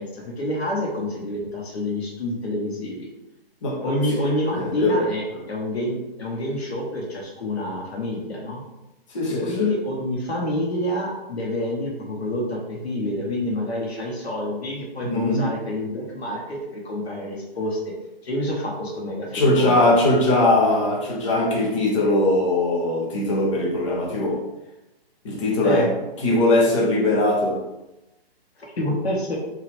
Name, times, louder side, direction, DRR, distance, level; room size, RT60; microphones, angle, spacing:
voice 1, 0.0-3.1 3.8-8.6 9.3-17.9 18.2-20.0 25.6-25.9 28.8-29.4, left 1 dB, 85° left, -2 dB, 0.9 m, -28 dB
voice 2, 3.6-5.0 5.3-5.4 9.1-9.7 15.0-15.5 19.3-24.4 25.2-25.9 26.2-27.6, left 2 dB, 30° left, -1 dB, 0.7 m, -21 dB
2.9 x 2.4 x 3.0 m, 0.97 s
hypercardioid pair, 145°, 31 cm